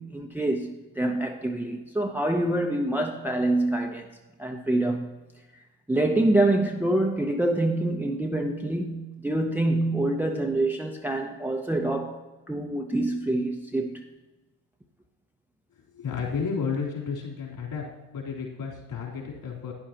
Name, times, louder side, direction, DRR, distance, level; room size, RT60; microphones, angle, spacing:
voice 1, 0.0-5.1 5.9-14.0, right 1 dB, 5° right, 0.7 m, -26 dB
voice 2, 16.0-17.8 18.1-19.7, left 5 dB, 50° left, 3.6 m, -32 dB
11.5 x 9.9 x 2.9 m
hypercardioid pair, 65°, 47 cm